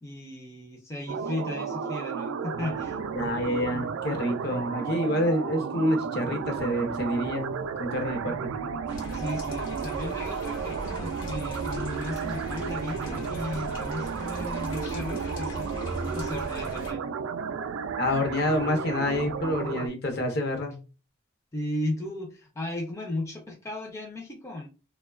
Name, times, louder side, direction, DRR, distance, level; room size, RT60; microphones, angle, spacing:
voice 1, 0.0-3.0 9.1-17.1 21.5-24.7, left 1 dB, 15° left, 0.4 m, -35 dB
sound 1, 1.1-19.9, right 6 dB, 85° right, 0.3 m, -33 dB
voice 2, 3.1-8.5 18.0-20.8, left 1 dB, 55° left, 0.7 m, -28 dB
sound 2, 8.9-16.9, equal, 70° left, 0.9 m, -38 dB
3.0 x 2.1 x 2.3 m
head